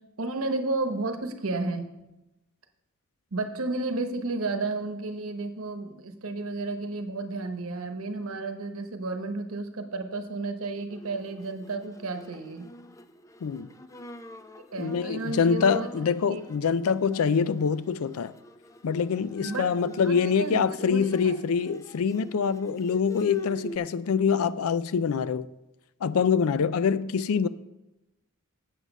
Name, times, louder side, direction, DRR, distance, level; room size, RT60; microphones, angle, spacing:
voice 1, 0.2-1.9 3.3-12.7 14.7-15.9 16.3-16.4 19.4-21.3, right 3 dB, 75° right, 1.0 m, -32 dB
Bowed string instrument, 10.8-23.8, equal, 15° left, 0.4 m, -45 dB
voice 2, 14.8-18.3 18.8-25.5 26.0-27.5, left 6 dB, 80° left, 0.4 m, -25 dB
8.1 x 7.6 x 5.3 m
head